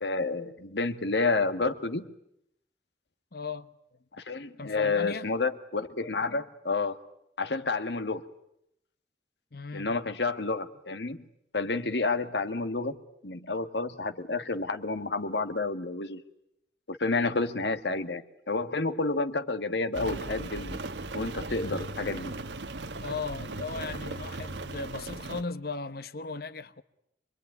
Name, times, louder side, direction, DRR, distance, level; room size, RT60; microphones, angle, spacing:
voice 1, 0.0-2.1 4.2-7.0 7.4-8.3 9.7-11.2 11.5-13.0 13.2-16.2 16.9-18.2 18.5-20.8 21.1-22.3, left 3 dB, 75° left, 1.6 m, -30 dB
voice 2, 3.3-3.7 4.6-5.3 9.5-9.9 21.6-21.8 23.0-26.8, left 4 dB, 60° left, 1.1 m, -37 dB
Rain, 19.9-25.4, right 2 dB, 80° right, 1.4 m, -37 dB
25.5 x 23.0 x 9.5 m
head